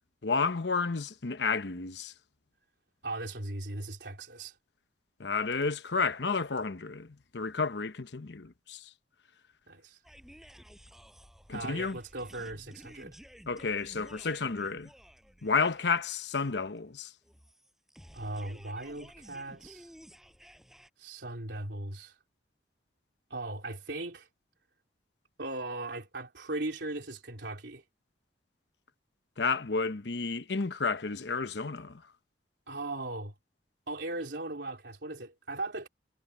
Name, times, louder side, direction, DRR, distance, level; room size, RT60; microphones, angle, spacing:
voice 1, 0.2-2.1 5.2-8.8 11.5-12.0 13.5-14.9 15.4-17.1 29.4-32.0, left 4 dB, 80° left, 1.0 m, -31 dB
voice 2, 3.0-4.6 9.7-10.0 11.5-13.2 18.1-19.9 21.0-22.2 23.3-24.3 25.4-27.8 32.7-33.3 33.9-35.9, right 2 dB, 80° right, 3.4 m, -38 dB
sound 1, 10.0-20.9, equal, ahead, 5.0 m, -54 dB
head